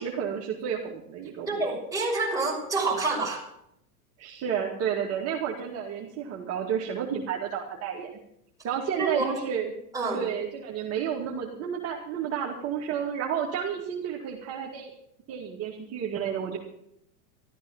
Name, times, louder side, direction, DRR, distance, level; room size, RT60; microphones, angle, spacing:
voice 1, 0.0-1.8 4.2-8.1 8.6-9.7 10.1-14.9 15.3-16.6, right 8 dB, 30° right, -2 dB, 2.3 m, -31 dB
voice 2, 1.5-3.4 8.9-9.4 9.9-10.2, right 3 dB, 5° right, -3 dB, 6.2 m, -27 dB
14.0 x 13.0 x 7.2 m, 0.78 s
supercardioid pair, 140°, 46 cm